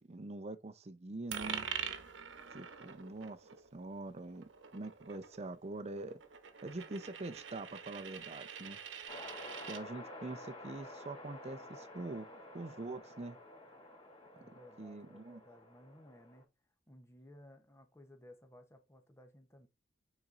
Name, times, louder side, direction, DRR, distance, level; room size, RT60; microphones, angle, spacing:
voice 1, 0.0-1.7 2.5-6.2 6.6-8.8 9.7-12.3 12.5-13.4 14.8-15.4, right 2 dB, 35° right, 0.6 m, -44 dB
Coin (dropping), 1.3-9.8, right 7 dB, 85° right, 0.9 m, -45 dB
sound 1, 9.1-16.4, left 1 dB, 35° left, 3.2 m, -51 dB
voice 2, 14.4-16.5 16.9-19.7, left 1 dB, 15° left, 0.9 m, -58 dB
9.1 x 4.1 x 2.5 m
head